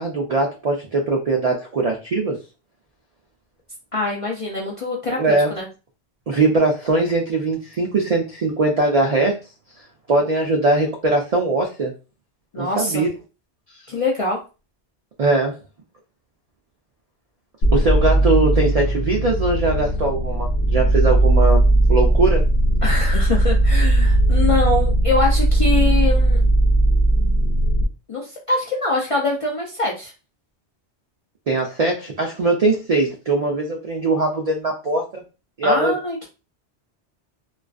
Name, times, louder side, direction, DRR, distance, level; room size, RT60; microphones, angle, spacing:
voice 1, 0.0-2.4 5.2-5.5 6.3-9.4 10.1-11.9 12.6-13.1 15.2-15.6 17.7-21.6 21.9-22.4 31.5-35.2 35.6-35.9, right 2 dB, 65° right, 1 dB, 0.3 m, -20 dB
voice 2, 3.9-5.7 12.5-13.0 13.9-14.4 22.8-26.4 28.1-30.1 35.6-36.3, left 2 dB, 50° left, -2 dB, 0.4 m, -24 dB
sound 1, 17.6-27.9, right 1 dB, 75° left, 1.0 m, -17 dB
2.4 x 2.2 x 2.3 m, 0.31 s
omnidirectional pair, 1.2 m